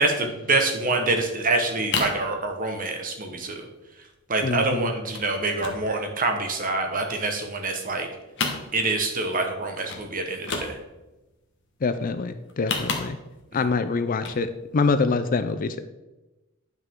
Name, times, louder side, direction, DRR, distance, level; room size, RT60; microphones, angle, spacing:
voice 1, 0.0-3.7 4.3-8.1 8.7-10.8, right 3 dB, 40° right, 4 dB, 1.2 m, -26 dB
sound 1, 1.1-1.2 1.4-2.3 2.6-3.0 3.3-3.4 3.6-3.8 4.2-4.6 5.1-5.3 5.6-6.8 7.2-8.0 8.3-9.1 9.5-9.6 9.9-10.1 10.3-11.1 12.4-13.5 14.1-14.4 14.8-14.9, left 4 dB, 60° left, 1.2 m, -31 dB
voice 2, 4.4-4.9 11.8-13.2 13.5-15.8, left 4 dB, 40° left, 11 dB, 0.4 m, -25 dB
9.7 x 5.7 x 3.7 m, 1.0 s
head